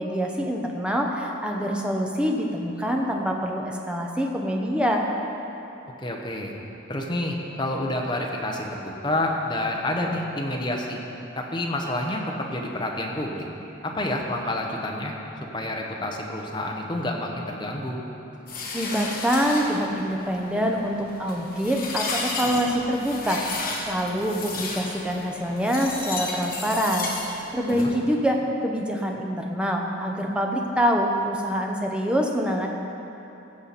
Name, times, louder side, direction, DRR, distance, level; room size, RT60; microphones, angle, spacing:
voice 1, 0.0-5.0 18.7-32.7, equal, 5° right, 0 dB, 0.8 m, -25 dB
voice 2, 6.0-6.5 6.9-11.0 11.4-13.4 13.8-15.1 15.5-18.0 27.7-27.9, left 1 dB, 20° left, 0 dB, 0.9 m, -28 dB
sound 1, 18.5-27.8, left 3 dB, 45° left, 1.5 m, -33 dB
16.0 x 7.0 x 4.2 m, 3.0 s
head